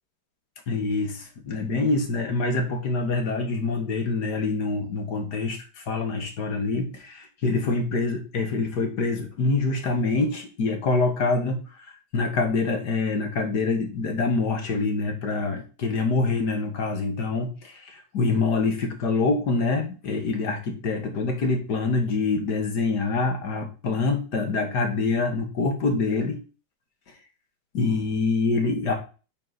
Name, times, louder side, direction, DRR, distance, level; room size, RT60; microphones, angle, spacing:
voice 1, 0.7-26.4 27.7-28.9, left 3 dB, 65° left, 4 dB, 2.2 m, -25 dB
9.2 x 4.3 x 4.1 m, 0.34 s
omnidirectional pair, 2.0 m